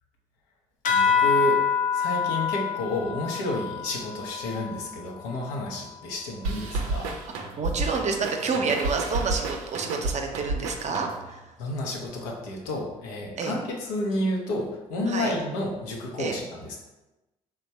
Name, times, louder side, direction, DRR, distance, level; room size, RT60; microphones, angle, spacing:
sound 1, 0.8-5.8, left 6 dB, 45° left, 0.6 m, -27 dB
voice 1, 0.9-1.6 1.9-7.2 11.6-16.8, left 1 dB, 80° left, 0 dB, 0.7 m, -30 dB
sound 2, 6.4-11.4, right 3 dB, 85° right, 0.5 m, -31 dB
voice 2, 7.6-11.4 13.4-13.5 15.1-15.3 16.2-16.4, right 4 dB, 40° right, 4 dB, 0.6 m, -29 dB
3.4 x 2.2 x 4.1 m, 1.0 s
hypercardioid pair, 55°, 18 cm